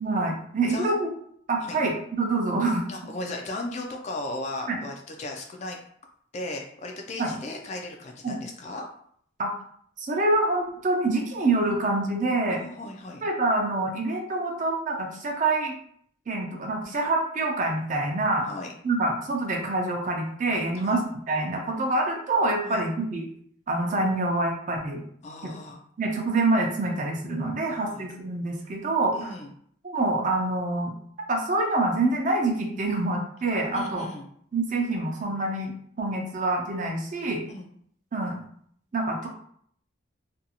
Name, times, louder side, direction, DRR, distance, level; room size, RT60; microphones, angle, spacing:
voice 1, 0.0-1.1 1.5-2.9 4.7-4.8 7.2-7.3 8.2-8.4 9.4-9.5 10.0-12.6 13.2-15.8 16.3-18.5 18.8-21.0 21.3-23.3 23.7-25.0 25.4-25.5 26.0-29.3 29.8-30.9 31.3-34.0 34.5-37.4 38.1-38.4 38.9-39.3, right 2 dB, 40° right, 0 dB, 0.5 m, -26 dB
voice 2, 2.9-5.8 6.3-8.9 12.5-13.2 18.4-18.7 20.7-21.0 22.6-22.8 25.2-25.8 27.6-28.1 29.1-29.5 33.7-34.3 37.5-37.7, left 2 dB, 35° left, 2 dB, 0.3 m, -36 dB
2.5 x 2.3 x 2.8 m, 0.64 s
head